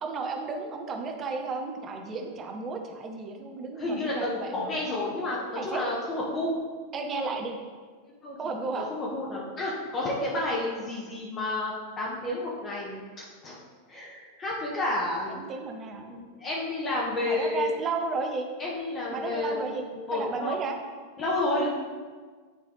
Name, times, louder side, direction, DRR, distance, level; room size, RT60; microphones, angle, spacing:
voice 1, 0.0-4.8 5.6-5.9 6.9-7.6 8.4-8.9 15.3-16.0 17.2-18.5 19.1-19.8 20.1-20.8, right 4 dB, 30° right, 3 dB, 0.8 m, -33 dB
voice 2, 3.8-6.6 7.2-7.4 8.2-8.4 8.7-13.0 13.4-13.5 13.9-15.5 16.1-17.7 18.6-20.6 21.2-21.7, left 2 dB, 25° left, -4 dB, 1.2 m, -30 dB
9.9 x 3.4 x 3.9 m, 1.5 s
figure-of-eight pair, 90°, 0 cm